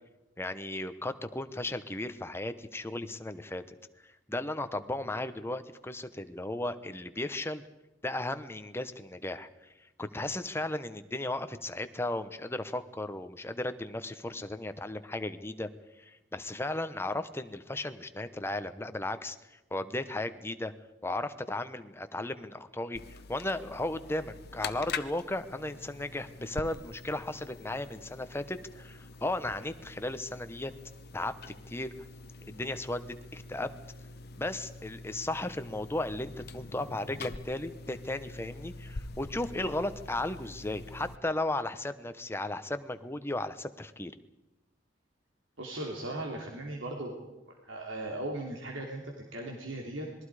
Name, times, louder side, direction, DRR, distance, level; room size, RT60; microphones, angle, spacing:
voice 1, 0.4-3.6 4.0-7.6 8.0-9.7 10.0-15.7 16.0-19.4 19.7-20.7 21.0-30.7 31.1-31.3 31.7-31.9 32.4-33.7 34.4-44.1, left 2 dB, 15° left, 10 dB, 1.0 m, -35 dB
sound 1, 22.9-41.2, left 4 dB, 55° left, 1.0 m, -45 dB
voice 2, 45.6-50.1, right 1 dB, 80° right, 0 dB, 3.1 m, -38 dB
27.0 x 21.0 x 4.9 m, 0.99 s
head